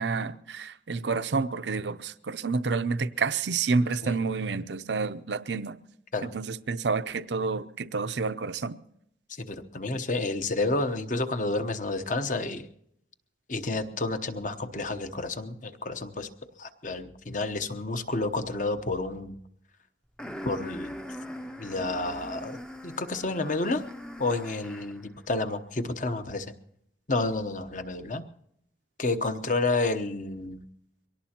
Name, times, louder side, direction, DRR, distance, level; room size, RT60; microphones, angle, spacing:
voice 1, 0.0-5.8 6.2-8.7, right 4 dB, 75° right, 0.6 m, -29 dB
voice 2, 9.4-12.7 13.5-16.3 16.6-19.4 20.4-21.0 21.6-22.6 22.8-23.8 24.2-26.5 27.1-28.2 29.0-30.6, left 2 dB, 45° left, 1.0 m, -30 dB
sound 1, 20.2-25.1, left 1 dB, 5° left, 0.6 m, -41 dB
23.5 x 18.0 x 2.9 m
head